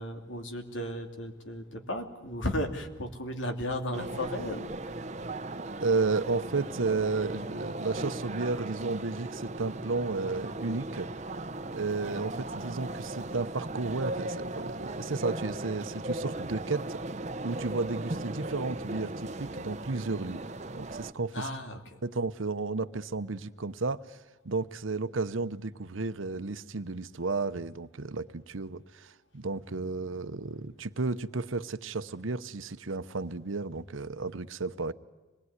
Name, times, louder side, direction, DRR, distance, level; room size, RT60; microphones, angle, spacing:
voice 1, 0.0-4.9 21.3-21.8, left 1 dB, 80° left, 2.7 m, -35 dB
sound 1, 3.9-21.1, right 2 dB, 35° right, 0.8 m, -37 dB
voice 2, 5.5-11.1 11.7-17.0 17.4-20.4 20.7-21.5 22.0-34.9, right 3 dB, 90° right, 0.9 m, -33 dB
26.0 x 20.0 x 9.6 m
head